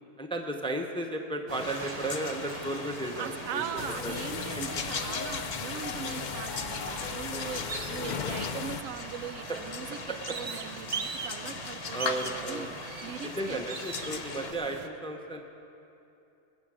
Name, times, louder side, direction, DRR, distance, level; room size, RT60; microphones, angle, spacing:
voice 1, 0.2-3.7 4.0-4.1 9.5-9.6 10.1-10.4 11.9-12.7 13.2-15.4, right 1 dB, 5° left, 3 dB, 0.6 m, -34 dB
sound 1, 1.5-14.5, left 5 dB, 55° left, 1.0 m, -40 dB
sound 2, 1.5-14.9, right 5 dB, 55° right, 0.4 m, -42 dB
voice 2, 3.2-10.0 10.3-12.7 13.0-13.6, right 8 dB, 80° right, 10 dB, 1.0 m, -40 dB
sound 3, 3.8-8.8, left 7 dB, 75° left, 0.4 m, -37 dB
20.0 x 7.7 x 6.2 m, 2.8 s
omnidirectional pair, 1.4 m